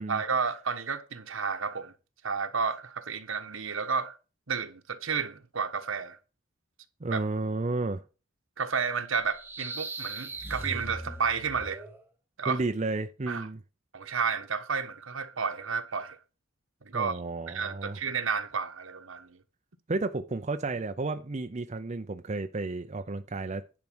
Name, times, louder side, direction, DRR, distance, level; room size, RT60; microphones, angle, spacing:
voice 1, 0.1-1.9 2.2-4.2 4.5-6.2 7.1-7.2 8.6-11.8 12.4-12.6 13.3-13.5 13.9-16.2 16.8-17.2 17.5-19.4, right 5 dB, 80° right, 1.2 m, -31 dB
voice 2, 7.0-8.0 12.5-13.6 16.9-18.0 19.9-23.6, right 3 dB, 35° right, 0.6 m, -32 dB
sound 1, 9.2-12.0, right 2 dB, 10° right, 1.0 m, -39 dB
10.5 x 4.8 x 6.2 m
head